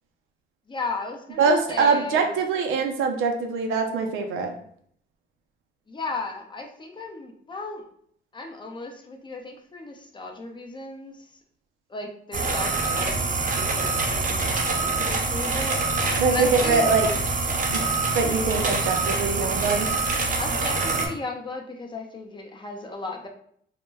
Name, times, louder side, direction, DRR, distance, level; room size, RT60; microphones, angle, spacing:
voice 1, 0.7-2.3 5.9-7.9 8.3-11.3 11.9-15.8 16.3-16.9 20.4-23.3, left 3 dB, 25° left, 2 dB, 0.5 m, -35 dB
voice 2, 1.4-4.5 16.2-17.1 17.7-17.8 18.2-19.9, right 4 dB, 90° right, 4 dB, 0.5 m, -23 dB
sound 1, 12.3-21.1, right 3 dB, 45° right, 0.6 m, -25 dB
2.1 x 2.1 x 3.2 m, 0.64 s
cardioid pair, 90°, 20 cm